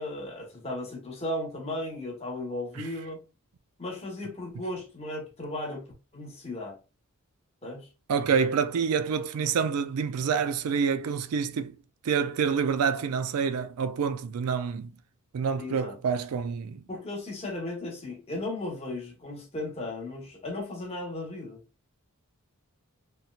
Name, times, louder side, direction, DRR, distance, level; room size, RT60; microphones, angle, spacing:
voice 1, 0.0-3.2 3.8-5.9 6.1-6.8 7.6-7.9 15.6-16.0 16.9-21.6, left 1 dB, 25° left, 0.9 m, -36 dB
voice 2, 8.1-11.8 12.0-14.9 15.3-16.8, right 6 dB, 80° right, 0.4 m, -27 dB
3.1 x 2.8 x 2.3 m
head